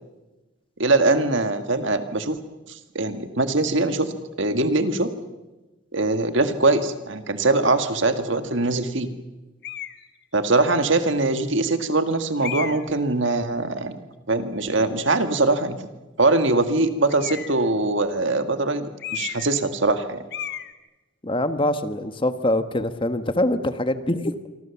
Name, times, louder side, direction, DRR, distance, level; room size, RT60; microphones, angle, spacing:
voice 1, 0.8-2.4 3.0-4.1 4.4-5.1 5.9-9.1 10.3-14.0 14.3-15.8 16.2-20.2, right 2 dB, 65° right, 9 dB, 1.9 m, -22 dB
sound 1, 9.6-10.0 10.8-10.9 12.4-13.0 17.1-17.7 19.0-19.6 19.9-20.0 20.3-20.7, left 10 dB, 55° left, 1.5 m, -33 dB
voice 2, 21.2-24.5, left 1 dB, 25° left, 10 dB, 1.4 m, -24 dB
26.5 x 25.0 x 7.2 m, 1.1 s
head